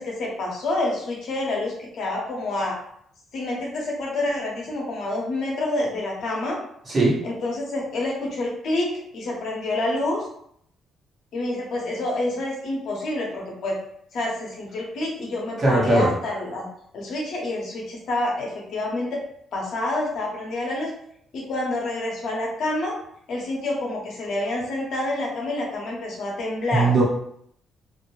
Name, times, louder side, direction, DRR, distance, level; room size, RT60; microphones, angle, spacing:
voice 1, 0.0-2.8 3.3-6.6 7.2-10.3 11.3-13.8 14.1-16.7 16.9-19.2 19.5-20.9 21.3-22.9 23.3-26.9, left 2 dB, 70° left, -2 dB, 0.9 m, -28 dB
voice 2, 15.6-16.1 26.7-27.0, right 2 dB, 35° right, -6 dB, 1.3 m, -18 dB
2.6 x 2.1 x 3.1 m, 0.69 s
cardioid pair, 90°, 0 cm